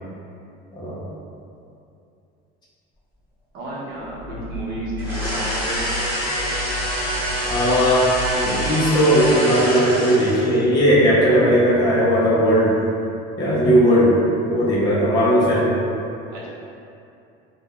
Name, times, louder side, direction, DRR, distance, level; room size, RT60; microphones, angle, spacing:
voice 1, 3.5-5.9 16.3-16.5, right 1 dB, 65° right, -6 dB, 0.7 m, -32 dB
sound 1, 3.9-9.4, left 2 dB, 50° left, 0.8 m, -33 dB
sound 2, 5.0-10.6, equal, 10° right, 1.0 m, -26 dB
voice 2, 7.5-12.7 13.4-14.2 14.4-15.8, equal, 20° left, -7 dB, 0.3 m, -17 dB
3.3 x 2.1 x 2.2 m, 2.6 s
cardioid pair, 175°, 21 cm